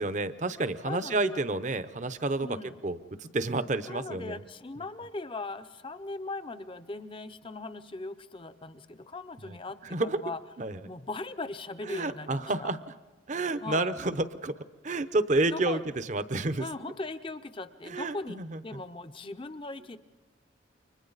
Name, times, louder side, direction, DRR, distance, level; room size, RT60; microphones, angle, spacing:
voice 1, 0.0-2.6 2.8-4.4 9.4-9.6 9.8-10.2 10.6-10.8 11.9-12.8 13.3-14.6 14.8-16.7 17.9-18.8, right 2 dB, 40° right, 12 dB, 0.8 m, -30 dB
voice 2, 0.8-1.4 2.4-2.8 3.9-10.4 10.9-12.7 13.6-14.0 15.5-15.8 16.6-20.0, left 3 dB, 25° left, 10 dB, 0.7 m, -39 dB
29.5 x 24.5 x 4.1 m, 1.3 s
head